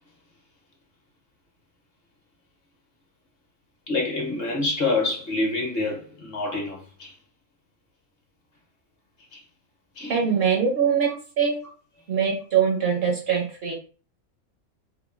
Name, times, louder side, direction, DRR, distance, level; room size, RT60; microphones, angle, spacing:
voice 1, 3.9-7.1 9.3-9.4 10.0-10.1 11.1-11.2, left 2 dB, 55° left, 0.9 m, -27 dB
voice 2, 10.1-11.6 12.1-13.7, right 7 dB, 60° right, 0.8 m, -23 dB
3.0 x 2.3 x 2.3 m
omnidirectional pair, 1.3 m